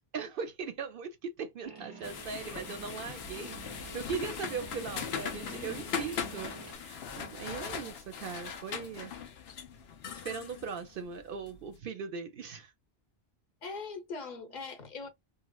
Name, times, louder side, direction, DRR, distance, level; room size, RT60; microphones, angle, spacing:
voice 1, 0.1-9.1 10.2-12.7, right 6 dB, 65° right, 0.7 m, -39 dB
sound 1, 1.6-6.7, right 4 dB, 30° right, 0.5 m, -49 dB
sound 2, 2.0-11.6, left 7 dB, 80° left, 0.9 m, -40 dB
voice 2, 5.4-6.0 13.6-15.1, left 4 dB, 50° left, 0.9 m, -42 dB
3.0 x 2.6 x 2.2 m
omnidirectional pair, 1.0 m